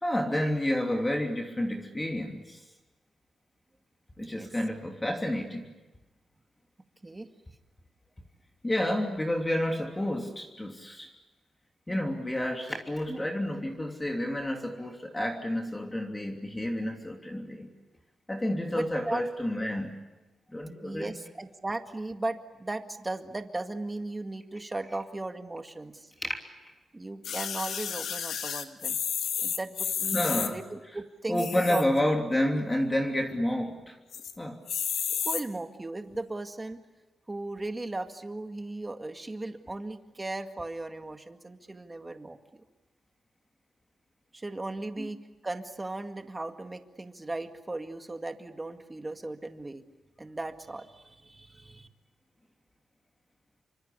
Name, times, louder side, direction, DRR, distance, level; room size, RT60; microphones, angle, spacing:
voice 1, 0.0-2.6 4.2-5.7 8.6-11.1 11.9-17.7 18.3-19.9 20.5-21.2 26.2-26.4 30.1-30.6 31.3-34.0 34.4-34.6 45.0-45.1, left 1 dB, 15° left, 2 dB, 3.0 m, -30 dB
voice 2, 4.2-4.5 7.0-7.3 13.1-13.2 18.7-19.2 20.8-26.1 26.9-29.0 29.4-31.8 35.3-36.8 37.3-42.4 44.3-49.8 50.2-51.9, right 2 dB, 20° right, 6 dB, 1.9 m, -37 dB
sound 1, 27.2-30.5 31.3-32.0 32.5-32.6 32.7-32.8 33.2-33.6 34.1-34.3 34.7-35.4 36.1-36.2, left 8 dB, 85° left, 2.0 m, -32 dB
27.5 x 25.0 x 8.4 m, 1.1 s
cardioid pair, 100°, 0 cm